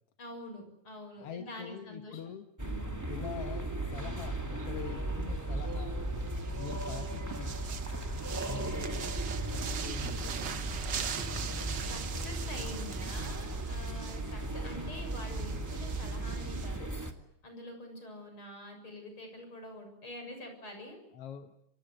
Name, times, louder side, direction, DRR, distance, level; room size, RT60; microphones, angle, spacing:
voice 1, 0.2-3.0 11.9-16.9 17.4-21.0, left 1 dB, 40° left, 5 dB, 7.9 m, -46 dB
voice 2, 1.2-2.5 3.1-6.0 6.6-7.6 8.4-9.2 9.5-10.8 21.1-21.5, left 8 dB, 55° left, 7 dB, 2.1 m, -44 dB
sound 1, 2.6-17.1, right 2 dB, 5° right, 1.9 m, -36 dB
sound 2, 4.1-16.8, right 7 dB, 50° right, 1.4 m, -42 dB
28.0 x 25.5 x 8.1 m, 0.77 s
omnidirectional pair, 3.5 m